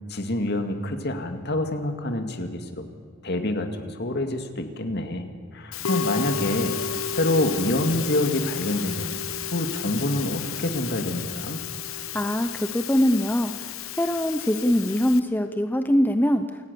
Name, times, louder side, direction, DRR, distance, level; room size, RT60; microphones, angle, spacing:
voice 1, 0.1-2.9 3.2-5.3 5.5-6.8 7.1-9.2 9.5-11.6, left 1 dB, 55° left, 6 dB, 2.2 m, -26 dB
Musical instrument, 5.7-15.2, left 7 dB, 90° left, 1.1 m, -32 dB
voice 2, 12.1-13.7 14.0-16.7, equal, 10° left, 8 dB, 0.7 m, -23 dB
28.0 x 17.5 x 7.0 m, 2.1 s
head